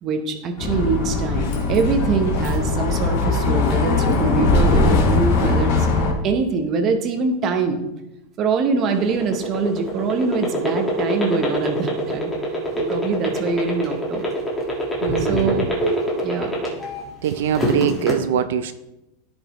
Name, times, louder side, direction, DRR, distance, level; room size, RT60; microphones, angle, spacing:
voice 1, 0.0-5.9 6.2-7.8 8.4-12.4 12.7-14.3 15.2-15.7 16.2-16.6, right 4 dB, 25° right, 6 dB, 0.8 m, -24 dB
Bus, 0.6-6.1, left 3 dB, 50° left, 2.0 m, -20 dB
sound 1, 8.8-17.0 17.4-18.1, equal, 5° left, 1.7 m, -23 dB
voice 2, 15.0-15.7 16.1-16.2 17.2-18.7, right 9 dB, 75° right, 11 dB, 0.4 m, -23 dB
14.5 x 5.3 x 3.1 m, 0.92 s
supercardioid pair, 175°, 0 cm